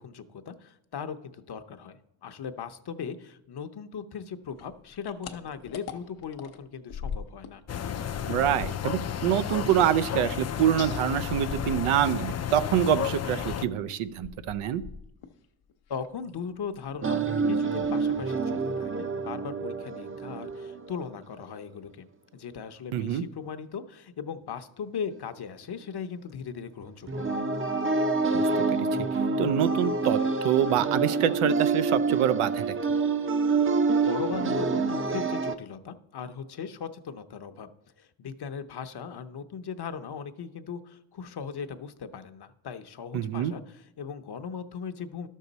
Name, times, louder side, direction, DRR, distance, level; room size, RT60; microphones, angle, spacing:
voice 1, 0.0-7.6 15.9-22.1 22.3-27.4 34.1-37.7 38.0-45.3, left 6 dB, 50° left, 9 dB, 0.8 m, -38 dB
sound 1, 4.5-7.6 7.9-12.4 12.7-15.4 15.7-16.4 16.7-17.0 17.3-17.4 17.7-18.2, left 6 dB, 85° left, 0.9 m, -42 dB
sound 2, 7.7-13.6, left 9 dB, 35° left, 0.4 m, -32 dB
voice 2, 8.3-14.8 22.9-23.2 28.3-28.6 29.0-29.1 29.4-30.2 30.4-32.7 43.1-43.5, right 9 dB, 90° right, 12 dB, 0.6 m, -26 dB
sound 3, 17.0-21.1 27.1-35.5, right 4 dB, 25° right, 0.6 m, -27 dB
12.0 x 6.5 x 4.0 m, 0.80 s
cardioid pair, 65°, 49 cm